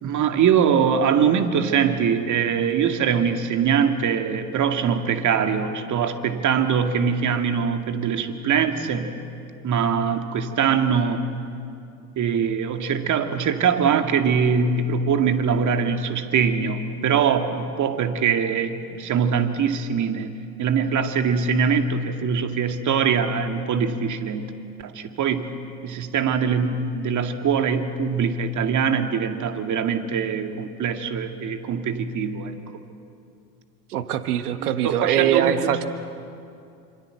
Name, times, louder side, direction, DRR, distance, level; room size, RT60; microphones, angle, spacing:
voice 1, 0.0-9.1 9.6-11.3 12.2-20.3 20.6-24.5 24.8-25.5 25.8-32.5 34.6-35.7, right 6 dB, 40° right, 7 dB, 2.2 m, -22 dB
voice 2, 33.9-35.9, right 10 dB, 75° right, 10 dB, 1.7 m, -22 dB
26.0 x 26.0 x 7.8 m, 2.5 s
hypercardioid pair, 80°, 46 cm